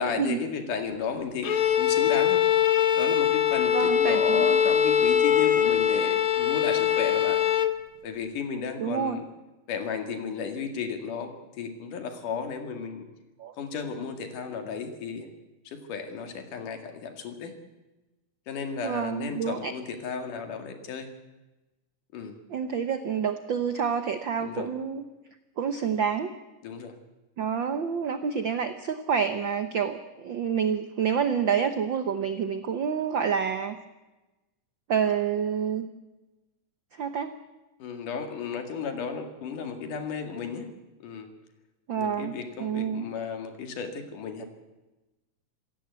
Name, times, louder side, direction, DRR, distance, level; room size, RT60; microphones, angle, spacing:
voice 1, 0.0-2.5 3.0-7.4 8.0-9.2 9.7-13.1 13.6-15.3 15.7-17.5 18.5-21.1 22.1-22.4 24.4-24.7 26.6-26.9 37.8-40.7 41.0-41.3 42.0-44.5, left 6 dB, 80° left, 6 dB, 3.6 m, -34 dB
Bowed string instrument, 1.4-7.8, left 9 dB, 65° left, 1.4 m, -22 dB
voice 2, 3.7-4.6 8.8-9.2 13.4-13.5 18.8-19.7 22.5-25.0 25.6-26.3 27.4-33.8 34.9-35.9 36.9-37.3 41.9-43.0, right 7 dB, 75° right, 10 dB, 1.1 m, -28 dB
26.5 x 16.5 x 8.2 m, 1.1 s
omnidirectional pair, 3.6 m